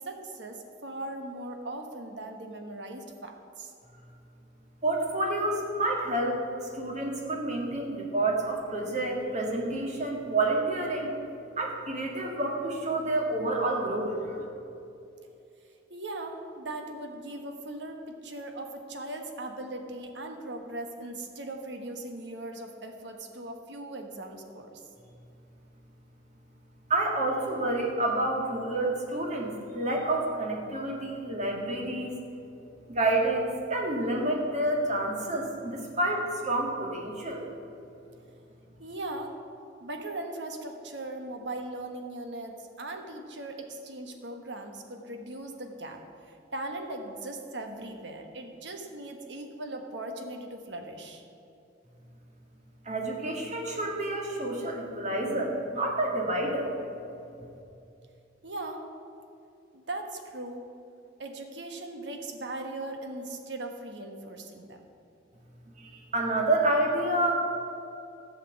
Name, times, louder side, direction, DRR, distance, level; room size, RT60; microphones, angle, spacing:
voice 1, 0.0-3.7 15.9-24.8 38.8-39.4 39.8-51.2 58.4-58.9 59.7-60.7 61.2-64.9, right 2 dB, 75° right, 4 dB, 1.3 m, -39 dB
voice 2, 4.8-6.4 6.7-11.2 11.6-14.4 26.9-32.2 32.9-37.5 52.8-56.7 65.8-67.3, right 2 dB, 40° right, 0 dB, 1.9 m, -29 dB
13.0 x 5.8 x 8.3 m, 2.7 s
head